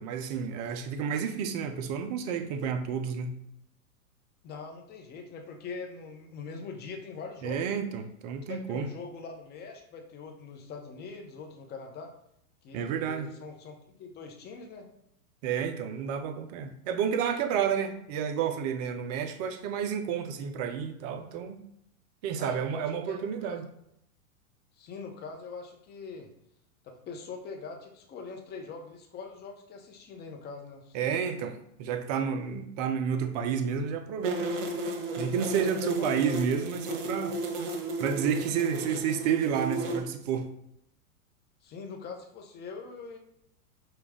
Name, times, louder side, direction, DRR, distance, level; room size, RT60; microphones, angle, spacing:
voice 1, 0.0-3.4 7.4-8.9 12.7-13.3 15.4-21.6 22.2-23.6 30.9-34.6 35.2-37.4 38.0-40.5, right 7 dB, 30° right, 7 dB, 0.4 m, -30 dB
voice 2, 4.4-7.8 8.5-12.1 12.6-14.9 22.4-23.6 24.8-26.3 26.8-31.0 35.6-36.4 41.6-43.2, left 4 dB, 25° left, 3 dB, 0.7 m, -42 dB
sound 1, 34.2-40.0, right 2 dB, 60° right, 1.0 m, -34 dB
5.2 x 2.3 x 3.5 m, 0.75 s
hypercardioid pair, 115°, 43 cm